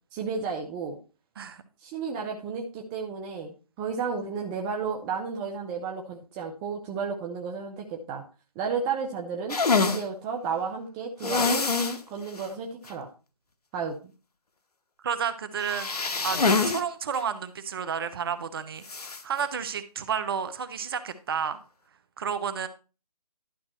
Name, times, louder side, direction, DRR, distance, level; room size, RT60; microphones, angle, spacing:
voice 1, 0.1-1.0 1.8-8.2 8.6-9.6 9.8-11.6 12.1-13.1 13.7-14.1, right 5 dB, 10° right, 1 dB, 0.6 m, -32 dB
sound 1, 9.5-10.0 11.2-12.0 12.4-12.5 12.9-13.0 15.6-16.8 17.1-17.2 18.9-19.2, left 4 dB, 75° left, 1.1 m, -25 dB
voice 2, 15.0-15.9 16.2-18.8 19.2-21.6 22.2-22.7, right 7 dB, 35° right, 12 dB, 0.9 m, -31 dB
11.5 x 5.6 x 4.3 m, 0.33 s
figure-of-eight pair, 155°, 20 cm